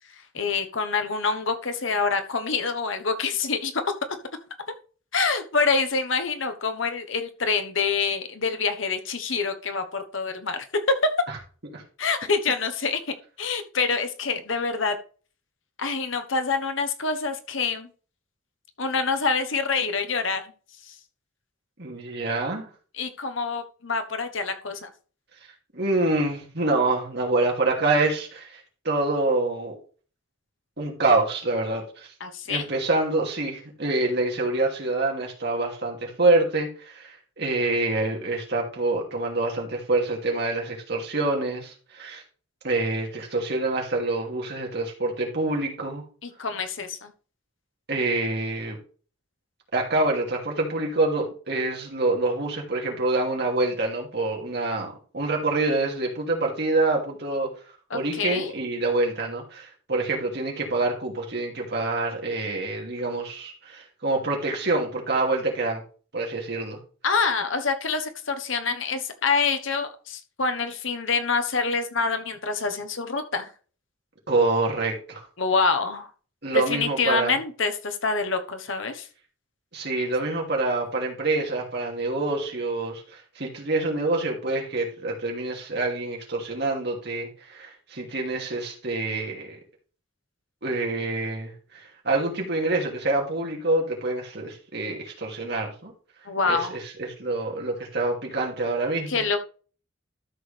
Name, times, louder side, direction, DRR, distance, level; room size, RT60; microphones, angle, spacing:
voice 1, 0.1-3.8 5.1-11.1 12.0-15.0 15.8-17.9 18.8-20.5 20.8-21.0 22.9-24.9 32.2-32.7 46.2-47.1 57.9-58.5 67.0-73.5 75.4-76.1 76.5-79.1 96.2-96.8 99.1-99.4, left 4 dB, 75° left, 7 dB, 1.2 m, -26 dB
voice 2, 21.8-22.7 25.7-29.8 30.8-32.1 32.5-42.2 42.6-46.0 47.9-48.8 49.7-57.5 57.9-65.8 66.1-66.8 74.3-75.2 76.4-77.4 79.7-89.6 90.6-95.9 96.5-99.2, right 2 dB, 55° right, 0 dB, 2.6 m, -26 dB
12.5 x 6.4 x 3.4 m, 0.39 s
head